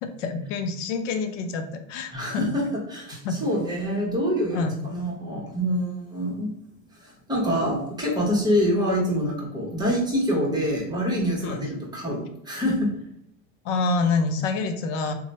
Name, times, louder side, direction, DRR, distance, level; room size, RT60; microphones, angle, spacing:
voice 1, 0.0-2.4 3.2-3.4 4.5-4.8 11.4-11.7 13.6-15.1, left 4 dB, 75° left, 6 dB, 0.6 m, -27 dB
voice 2, 2.1-6.5 6.9-12.9, equal, 10° right, -2 dB, 1.0 m, -26 dB
2.9 x 2.2 x 4.0 m, 0.75 s
supercardioid pair, 120°, 37 cm